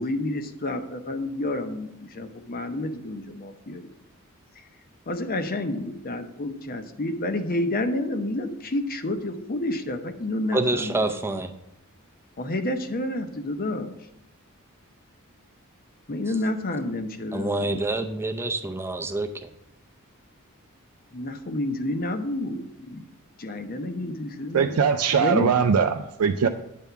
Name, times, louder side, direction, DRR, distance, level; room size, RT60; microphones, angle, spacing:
voice 1, 0.0-3.9 5.1-11.1 12.4-13.9 16.1-17.5 17.8-18.0 21.1-23.1 23.4-24.8 25.2-25.6, left 1 dB, 40° left, 8 dB, 0.7 m, -29 dB
voice 2, 10.5-11.5 17.3-19.5, right 2 dB, 10° right, 6 dB, 0.5 m, -27 dB
voice 3, 24.5-26.5, right 6 dB, 75° right, 5 dB, 0.4 m, -21 dB
9.3 x 3.5 x 6.9 m, 0.83 s
head